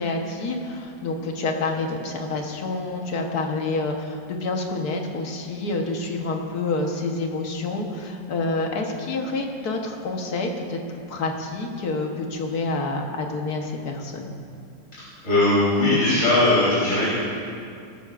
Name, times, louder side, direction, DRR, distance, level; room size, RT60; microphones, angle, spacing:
voice 1, 0.0-10.8 11.1-14.3, left 3 dB, 60° left, 2 dB, 1.6 m, -28 dB
voice 2, 15.2-17.1, left 2 dB, 40° left, -11 dB, 4.0 m, -19 dB
18.0 x 13.5 x 2.5 m, 2.4 s
omnidirectional pair, 2.0 m